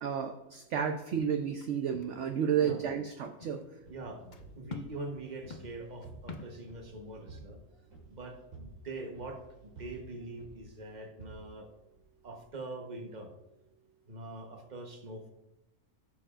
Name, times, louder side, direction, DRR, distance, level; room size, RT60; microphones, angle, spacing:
voice 1, 0.0-3.6, right 8 dB, 60° right, 5 dB, 0.8 m, -31 dB
sound 1, 1.2-1.7 1.9-2.2 2.4-2.9 3.2-3.7 4.3-4.5 4.7-4.9 5.3-6.6, left 3 dB, 45° left, 0.6 m, -46 dB
sound 2, 3.8-12.4, right 2 dB, 80° right, 2.6 m, -53 dB
voice 2, 3.9-4.3 4.5-7.6 8.1-11.7 12.2-13.3 14.1-15.3, right 2 dB, 30° right, 3 dB, 1.2 m, -43 dB
15.5 x 6.8 x 2.5 m, 0.92 s
omnidirectional pair, 1.6 m